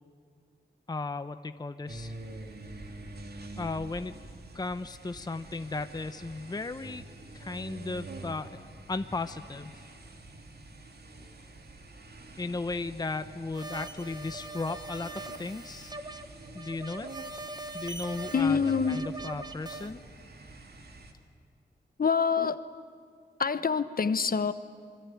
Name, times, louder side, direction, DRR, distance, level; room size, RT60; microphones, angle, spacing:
voice 1, 0.9-2.1 3.6-4.1 4.5-7.0 7.3-8.6 8.9-9.8 12.4-15.9 16.5-17.1 17.7-18.6 18.9-20.0, left 3 dB, 20° left, 10 dB, 0.8 m, -35 dB
sound 1, 1.9-21.1, right 2 dB, 60° right, 2.8 m, -46 dB
sound 2, 13.5-19.9, right 2 dB, 20° right, 1.1 m, -42 dB
voice 2, 18.3-19.0 22.0-22.6 23.4-24.5, left 6 dB, 50° left, 12 dB, 1.0 m, -26 dB
27.0 x 22.5 x 9.3 m, 2.1 s
wide cardioid pair, 100°, 19 cm